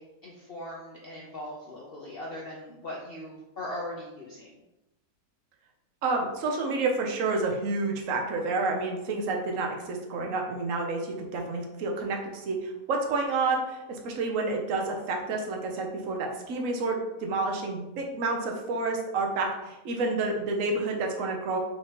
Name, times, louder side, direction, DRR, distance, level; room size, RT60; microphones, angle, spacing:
voice 1, 0.0-4.5, left 1 dB, 55° left, -3 dB, 0.6 m, -39 dB
voice 2, 6.0-21.6, right 3 dB, 60° right, 2 dB, 1.0 m, -29 dB
5.6 x 3.3 x 2.9 m, 0.97 s
omnidirectional pair, 1.7 m